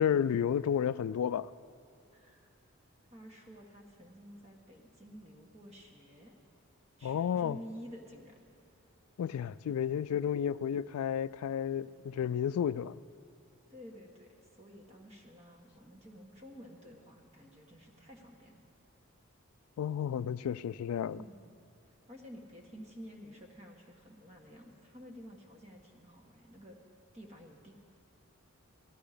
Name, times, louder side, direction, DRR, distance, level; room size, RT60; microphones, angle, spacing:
voice 1, 0.0-1.5 7.0-7.6 9.2-12.9 19.8-21.2, left 8 dB, 90° left, 18 dB, 0.3 m, -31 dB
voice 2, 2.1-2.5 3.1-6.3 7.0-8.4 13.7-18.6 21.1-21.5 21.9-26.8 27.1-27.7, equal, 30° right, 1 dB, 1.6 m, -51 dB
18.0 x 14.0 x 5.1 m, 2.5 s
head